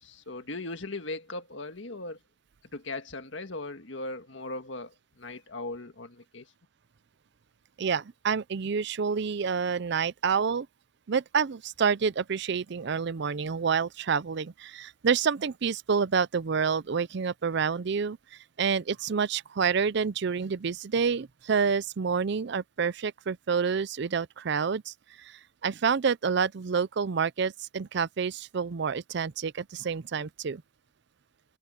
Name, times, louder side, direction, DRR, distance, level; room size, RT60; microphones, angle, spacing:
voice 1, 0.0-2.2 2.7-6.5, left 2 dB, 65° left, 1.9 m, -38 dB
voice 2, 7.8-10.7 11.1-18.2 18.6-30.6, right 6 dB, 60° right, 0.5 m, -28 dB
head